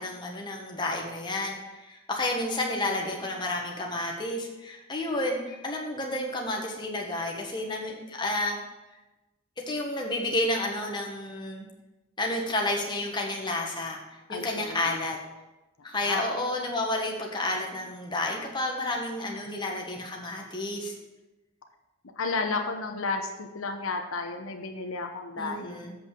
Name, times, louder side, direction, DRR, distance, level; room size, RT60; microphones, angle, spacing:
voice 1, 0.0-8.6 9.7-11.7 12.2-15.2 15.8-20.9 25.4-25.9, left 1 dB, 20° left, 0 dB, 1.4 m, -31 dB
voice 2, 14.3-14.9 16.0-16.2 22.2-25.8, left 3 dB, 80° left, 4 dB, 0.9 m, -32 dB
7.9 x 5.7 x 6.5 m, 1.0 s
head